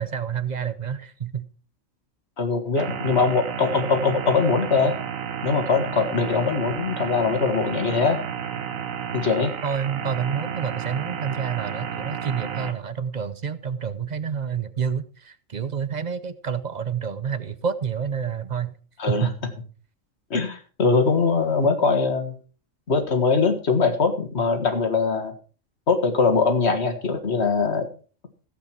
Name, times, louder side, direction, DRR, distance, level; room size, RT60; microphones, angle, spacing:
voice 1, 0.0-1.5 9.6-18.7 19.1-19.3, right 7 dB, 45° right, 13 dB, 0.6 m, -28 dB
voice 2, 2.4-4.9 5.4-8.2 9.1-9.5 19.0-19.3 20.3-22.4 22.9-25.3 25.9-27.9, left 4 dB, 55° left, 6 dB, 2.1 m, -22 dB
sound 1, 2.8-12.7, right 8 dB, 90° right, 1.4 m, -32 dB
15.5 x 8.3 x 4.5 m, 0.39 s
omnidirectional pair, 1.4 m